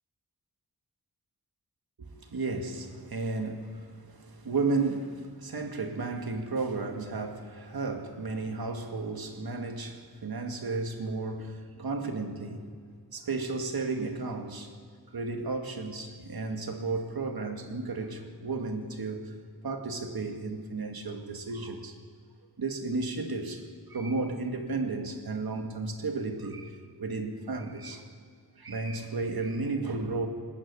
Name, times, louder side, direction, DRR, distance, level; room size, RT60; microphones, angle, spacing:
voice 1, 2.0-12.7 13.1-14.7 15.1-19.3 19.6-22.0 22.6-28.1 28.6-30.3, right 3 dB, 65° right, 2.3 m, -33 dB
19.5 x 15.5 x 9.9 m
wide cardioid pair, 95°, 39 cm